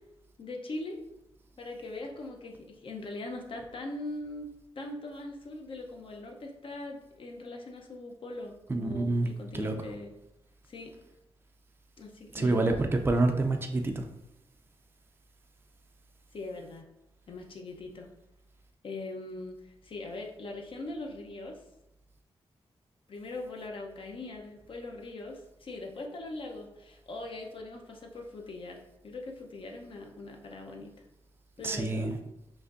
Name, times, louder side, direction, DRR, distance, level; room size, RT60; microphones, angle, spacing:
voice 1, 0.4-1.0 1.6-4.5 4.8-10.1 10.7-10.9 12.0-12.9 16.3-16.9 17.3-18.1 18.8-21.6 23.1-28.8 29.0-30.9 31.6-32.1, left 2 dB, 55° left, 1 dB, 0.7 m, -41 dB
voice 2, 8.7-9.3 9.5-9.8 12.3-14.0 31.6-32.2, right 2 dB, 20° right, 4 dB, 0.4 m, -27 dB
5.0 x 2.6 x 2.5 m, 0.88 s
cardioid pair, 90°, 10 cm